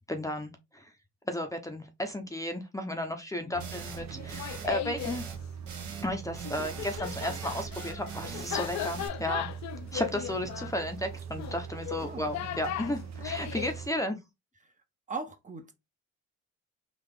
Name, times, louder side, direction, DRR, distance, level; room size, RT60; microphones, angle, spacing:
voice 1, 0.1-0.9 1.3-5.2 6.0-9.5 9.9-14.2, left 1 dB, 10° left, 0.6 m, -34 dB
voice 2, 3.4-4.2 6.5-7.4 12.0-12.5 14.6-14.7 15.1-15.7, right 4 dB, 25° right, 0.7 m, -43 dB
sound 1, 3.5-13.9, right 7 dB, 60° right, 0.7 m, -42 dB
sound 2, 3.6-4.0 4.3-4.7 5.0-5.4 5.6-6.1 6.3-9.1, right 6 dB, 80° right, 1.2 m, -43 dB
Laughter, 4.2-5.2 6.4-13.8, left 12 dB, 65° left, 0.5 m, -37 dB
3.8 x 2.4 x 3.3 m
cardioid pair, 90°, 30 cm